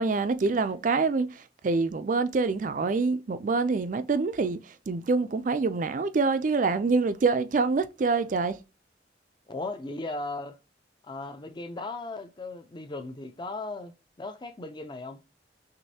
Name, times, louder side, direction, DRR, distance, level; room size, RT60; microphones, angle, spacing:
voice 1, 0.0-8.6, right 4 dB, 45° right, 0.4 m, -26 dB
voice 2, 9.5-10.6 11.0-15.2, left 2 dB, 25° left, 0.6 m, -37 dB
6.4 x 2.6 x 2.7 m
head